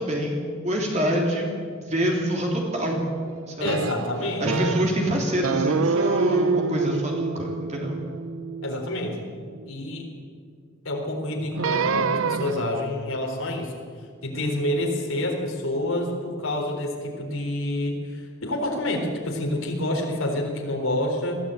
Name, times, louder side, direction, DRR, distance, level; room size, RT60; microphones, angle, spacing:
voice 1, 0.0-3.1 3.5-3.7 4.4-8.0 14.3-14.5, equal, 35° right, -1 dB, 3.3 m, -26 dB
voice 2, 3.6-4.7 8.6-9.2 9.7-10.1 10.8-13.7 14.2-21.4, left 1 dB, 85° left, 0 dB, 3.9 m, -28 dB
sound 1, 3.7-5.0 5.4-9.7 11.5-12.9, right 4 dB, 85° right, 0.7 m, -27 dB
22.0 x 14.5 x 9.0 m, 2.2 s
head